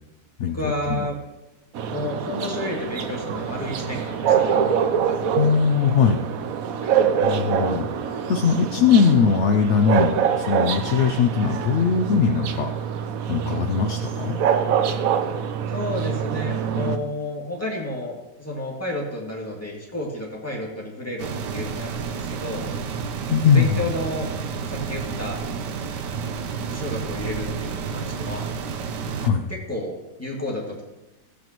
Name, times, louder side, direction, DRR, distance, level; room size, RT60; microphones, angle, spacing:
voice 1, 0.5-1.2 1.9-4.5 6.8-7.0 15.7-22.7 23.5-24.3 24.7-25.4 26.7-28.5 29.5-30.8, left 1 dB, 10° left, -2 dB, 2.1 m, -31 dB
sound 1, 1.8-17.0, right 8 dB, 65° right, 1.0 m, -25 dB
sound 2, 2.3-7.9, left 1 dB, 35° left, 1.9 m, -47 dB
voice 2, 5.4-6.2 7.2-12.7 13.3-14.4 23.3-23.8 29.2-29.5, left 6 dB, 65° left, 5 dB, 0.7 m, -20 dB
sound 3, 21.2-29.3, right 6 dB, 85° right, 1.4 m, -30 dB
16.0 x 8.4 x 3.0 m, 0.98 s
omnidirectional pair, 1.8 m